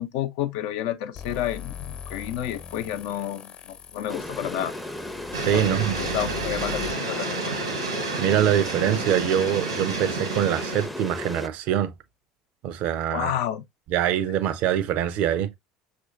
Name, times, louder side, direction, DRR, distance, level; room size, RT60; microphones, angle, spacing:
voice 1, 0.0-4.7 5.5-7.7 13.1-13.6, left 11 dB, 60° left, 0.7 m, -30 dB
sound 1, 1.2-6.9, left 7 dB, 45° left, 1.0 m, -40 dB
sound 2, 4.1-11.5, left 1 dB, ahead, 0.6 m, -35 dB
sound 3, 5.3-10.9, right 3 dB, 80° right, 1.2 m, -30 dB
voice 2, 5.4-6.0 8.2-11.9 12.6-13.3 13.9-15.5, right 10 dB, 55° right, 0.6 m, -24 dB
6.1 x 2.6 x 2.4 m
figure-of-eight pair, 70°, 3 cm